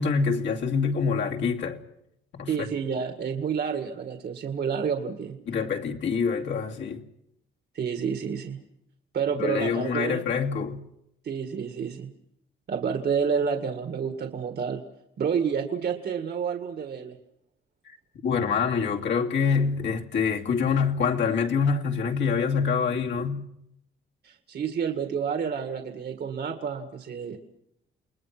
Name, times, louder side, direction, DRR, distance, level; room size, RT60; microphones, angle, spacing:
voice 1, 0.0-1.8 2.3-2.5 5.5-7.0 9.4-10.8 18.2-23.4, left 5 dB, 70° left, 2.7 m, -25 dB
voice 2, 2.5-5.4 7.7-8.6 9.1-10.3 11.2-12.1 12.7-14.8 15.2-17.2 24.2-27.4, right 6 dB, 55° right, 1.9 m, -29 dB
29.5 x 20.0 x 6.0 m
cardioid pair, 90°, 20 cm